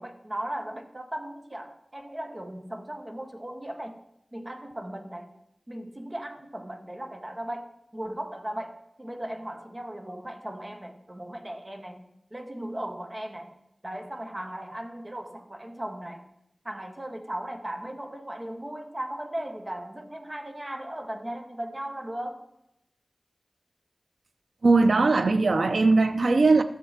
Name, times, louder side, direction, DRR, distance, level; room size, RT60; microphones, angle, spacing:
voice 1, 0.0-4.0 4.3-5.3 5.7-12.0 12.3-13.6 13.8-16.3 16.6-22.4, right 1 dB, 30° right, 1.3 m, -37 dB
voice 2, 24.6-26.6, right 3 dB, 85° right, 0.6 m, -20 dB
13.0 x 6.8 x 5.7 m
wide cardioid pair, 70°, 0 cm